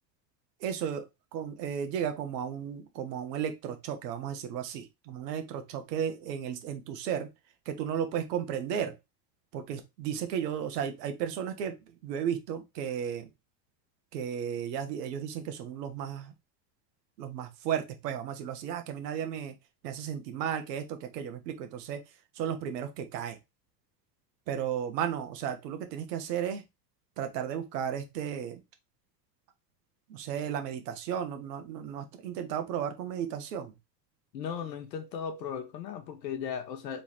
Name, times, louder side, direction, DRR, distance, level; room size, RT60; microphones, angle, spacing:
voice 1, 0.6-1.1 1.3-7.3 7.7-8.9 9.5-11.8 12.0-13.3 14.1-16.3 17.2-19.5 19.8-22.0 22.4-23.4 24.5-26.6 27.2-28.6 30.1-33.7, right 8 dB, 75° right, 1.2 m, -34 dB
voice 2, 34.3-37.0, left 7 dB, 85° left, 1.1 m, -36 dB
3.5 x 3.2 x 4.2 m
hypercardioid pair, 75°, 49 cm